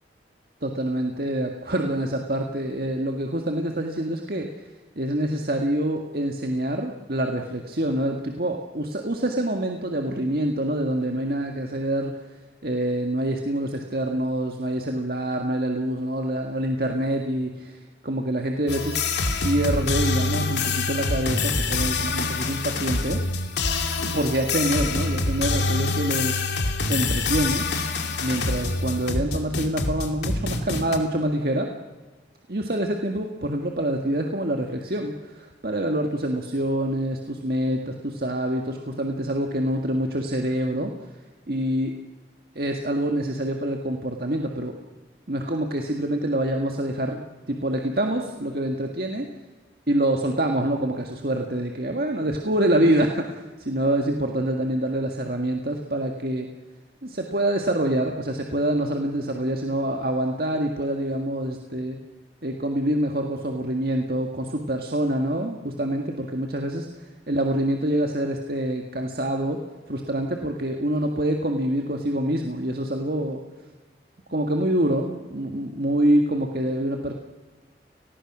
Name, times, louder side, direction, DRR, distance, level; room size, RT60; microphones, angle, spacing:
voice 1, 0.6-4.7 5.0-12.3 12.6-19.0 19.4-23.2 24.0-26.6 26.9-27.7 28.2-31.7 32.5-40.9 41.5-42.0 42.6-44.8 45.3-49.3 49.9-56.5 57.0-62.0 62.4-66.9 67.3-69.6 69.9-73.4 74.3-77.1, right 1 dB, 55° right, 3 dB, 1.8 m, -26 dB
sound 1, 18.7-31.0, left 3 dB, 80° left, 2.5 m, -26 dB
29.5 x 20.0 x 6.2 m, 1.3 s
head